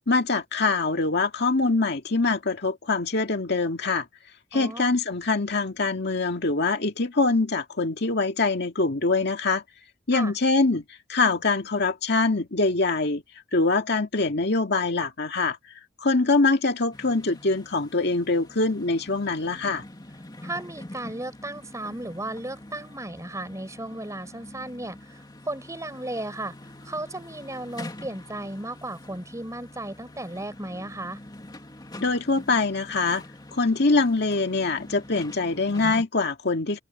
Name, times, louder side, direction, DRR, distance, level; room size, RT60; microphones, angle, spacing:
voice 1, 0.1-4.1 4.5-9.6 10.1-10.8 11.1-13.2 13.5-15.6 16.0-19.8 32.0-33.2 33.5-36.8, left 3 dB, 60° left, 2.1 m, -24 dB
voice 2, 4.5-4.9 10.1-10.3 20.4-26.5 26.8-31.2, right 1 dB, 15° right, 6.2 m, -35 dB
sound 1, 16.9-36.0, left 1 dB, 20° left, 2.3 m, -44 dB
open air
head